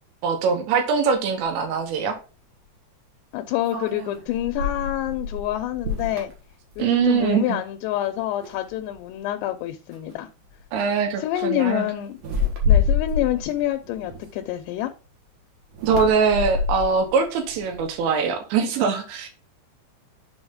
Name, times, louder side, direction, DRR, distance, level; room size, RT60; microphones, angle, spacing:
voice 1, 0.2-2.2 6.8-7.6 10.7-11.9 15.8-19.3, right 6 dB, 80° right, 3.4 m, -22 dB
sound 1, 1.4-1.5 3.7-7.3 7.6-8.0 8.4-9.1 9.9-10.1 10.4-10.8 12.1-14.8 15.7-18.1, left 5 dB, 60° right, 2.6 m, -27 dB
voice 2, 3.3-6.3 6.8-10.3 11.2-12.2 12.7-14.9, left 13 dB, 80° left, 2.7 m, -27 dB
7.1 x 5.2 x 3.7 m
omnidirectional pair, 5.1 m